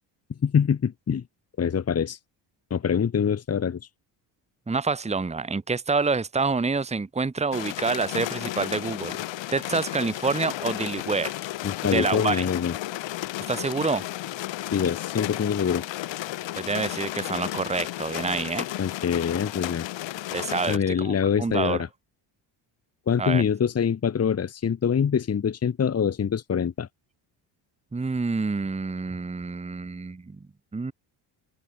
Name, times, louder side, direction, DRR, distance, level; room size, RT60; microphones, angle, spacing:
voice 1, 0.4-1.2 1.6-2.2 2.7-3.8 11.6-12.7 14.7-15.8 18.8-19.8 20.7-21.9 23.1-26.9, left 7 dB, 35° left, 1.7 m, -24 dB
voice 2, 4.7-9.2 9.5-11.3 11.8-12.5 13.5-14.0 16.6-18.6 20.3-21.8 23.2-23.4 27.9-30.4 30.7-30.9, right 4 dB, 15° right, 1.6 m, -27 dB
sound 1, 7.5-20.8, left 15 dB, 75° left, 4.0 m, -33 dB
cardioid pair, 115°, 45 cm